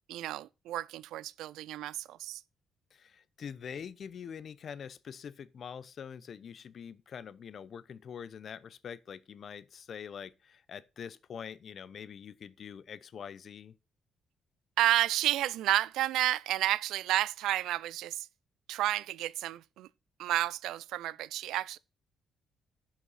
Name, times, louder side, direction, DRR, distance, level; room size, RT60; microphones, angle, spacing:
voice 1, 0.1-2.4 14.8-18.3 18.7-19.9 20.2-21.8, right 14 dB, 90° right, 0.4 m, -31 dB
voice 2, 2.9-13.7, left 7 dB, 55° left, 0.7 m, -44 dB
11.0 x 5.8 x 4.1 m
cardioid pair, 90°, 0 cm